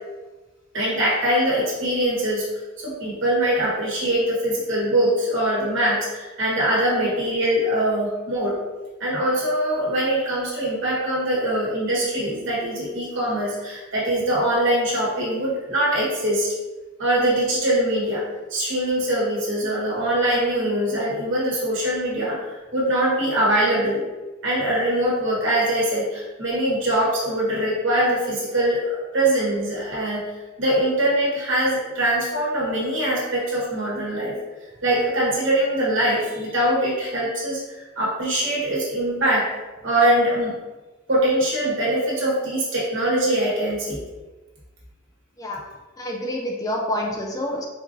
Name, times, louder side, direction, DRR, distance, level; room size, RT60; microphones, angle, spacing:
voice 1, 0.7-2.4 2.8-8.6 9.0-16.5 17.0-18.2 18.5-24.0 24.4-30.2 30.6-34.3 34.8-39.5 39.8-40.6 41.1-44.0, right 1 dB, 65° right, -6 dB, 1.3 m, -22 dB
voice 2, 46.0-47.6, left 1 dB, 15° left, 0 dB, 0.3 m, -27 dB
4.4 x 2.5 x 2.6 m, 1.2 s
head